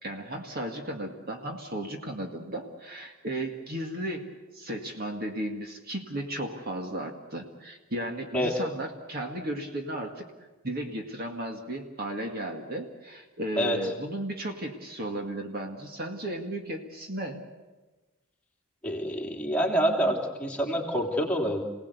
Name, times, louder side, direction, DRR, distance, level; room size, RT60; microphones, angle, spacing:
voice 1, 0.0-4.2 4.5-10.3 10.6-17.4, right 1 dB, 45° right, 3 dB, 2.0 m, -35 dB
voice 2, 18.8-21.6, equal, 5° left, -1 dB, 3.1 m, -27 dB
28.5 x 18.5 x 8.3 m, 1.2 s
head